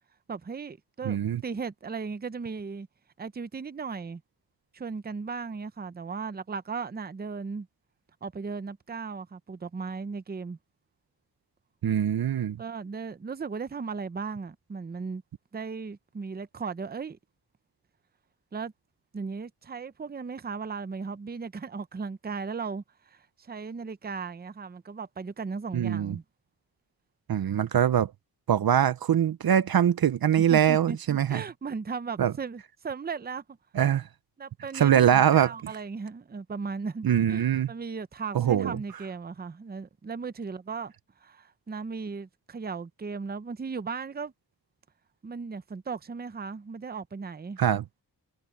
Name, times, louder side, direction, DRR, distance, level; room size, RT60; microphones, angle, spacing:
voice 1, 0.3-2.9 3.2-4.2 4.7-7.7 8.2-10.6 12.6-15.2 15.5-17.2 18.5-18.7 19.1-26.2 30.5-33.4 34.4-40.9 41.2-44.3 45.2-47.6, right 5 dB, 25° right, 0.6 m, -36 dB
voice 2, 1.1-1.4 11.8-12.6 25.7-26.2 27.3-28.1 28.5-31.4 32.2-32.3 33.7-34.0 34.7-35.5 37.0-37.7 38.3-38.8 47.6-47.8, right 9 dB, 60° right, 0.6 m, -23 dB
wide cardioid pair, 145°, 40 cm